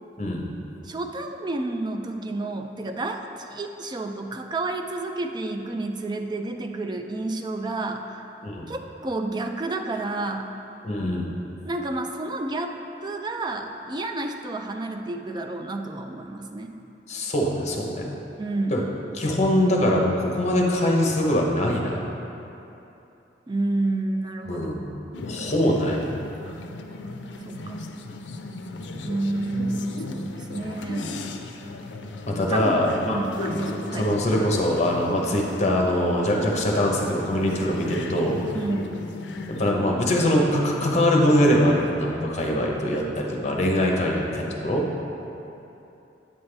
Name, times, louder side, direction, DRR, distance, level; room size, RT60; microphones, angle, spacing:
voice 1, 0.8-8.2 8.7-10.5 11.6-12.7 13.0-16.7 18.4-18.8 23.5-24.9 27.5-27.8 29.0-31.3 32.5-34.1 38.5-39.0, right 2 dB, 25° right, 4 dB, 0.4 m, -30 dB
voice 2, 10.8-11.3 17.1-18.1 18.7-18.8 19.1-22.0 24.5-24.8 25.2-26.0 32.3-33.2 33.9-38.4 39.6-44.8, left 1 dB, 40° left, -1 dB, 0.9 m, -23 dB
sound 1, 25.1-39.7, left 2 dB, 85° left, 0.4 m, -36 dB
8.7 x 5.6 x 3.3 m, 2.9 s
head